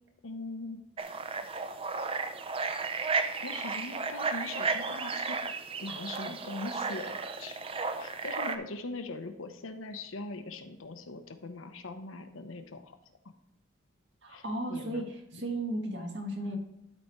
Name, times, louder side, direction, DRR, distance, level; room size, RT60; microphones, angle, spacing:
voice 1, 0.2-0.8 3.4-5.4 5.8-7.6 8.0-13.0 14.3-15.1 15.3-15.4, left 3 dB, 85° left, 7 dB, 0.9 m, -41 dB
sound 1, 1.0-8.6, right 4 dB, 25° right, 0.5 m, -34 dB
voice 2, 14.2-16.6, right 1 dB, 60° right, 2 dB, 1.7 m, -35 dB
12.0 x 4.3 x 4.5 m, 0.85 s
head